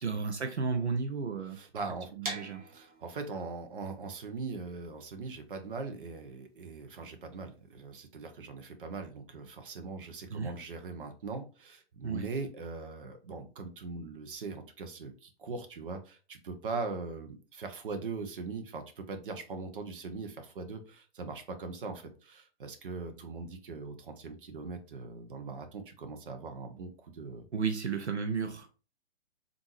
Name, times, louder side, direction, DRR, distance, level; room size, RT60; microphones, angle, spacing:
voice 1, 0.0-1.6 2.2-2.6 10.3-10.5 12.0-12.3 27.5-28.7, right 5 dB, 80° right, 6 dB, 0.7 m, -33 dB
voice 2, 1.5-2.4 2.6-27.4, right 4 dB, 50° right, 6 dB, 0.8 m, -41 dB
sound 1, 2.2-8.0, right 2 dB, 35° right, 1.1 m, -45 dB
3.5 x 2.5 x 3.1 m, 0.35 s
figure-of-eight pair, 125°, 33 cm